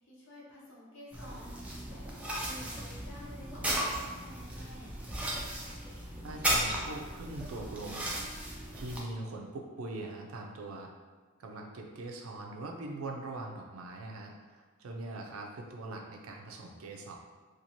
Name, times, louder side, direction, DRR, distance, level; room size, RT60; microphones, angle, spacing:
voice 1, 0.0-2.1 2.4-5.1, equal, 65° left, -5 dB, 0.8 m, -51 dB
sound 1, 1.1-9.0, right 1 dB, 5° right, 0.3 m, -36 dB
voice 2, 6.2-8.2 8.7-10.9 11.4-17.2, right 2 dB, 90° right, 1 dB, 0.4 m, -42 dB
2.6 x 2.4 x 2.9 m, 1.4 s
head